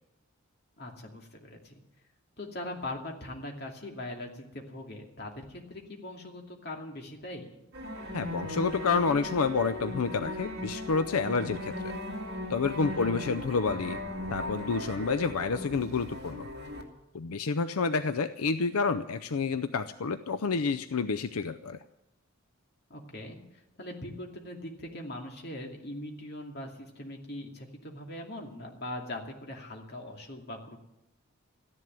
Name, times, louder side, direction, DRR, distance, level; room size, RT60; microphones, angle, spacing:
voice 1, 0.8-1.7 2.4-7.5 13.0-13.2 22.9-30.8, left 1 dB, 45° left, 1 dB, 2.6 m, -41 dB
sound 1, 7.7-16.8, left 1 dB, 50° right, 2.3 m, -37 dB
voice 2, 8.1-11.9 12.5-14.0 14.3-16.5 17.1-21.8, left 4 dB, 85° left, 11 dB, 0.6 m, -29 dB
14.0 x 11.0 x 9.4 m, 0.88 s
head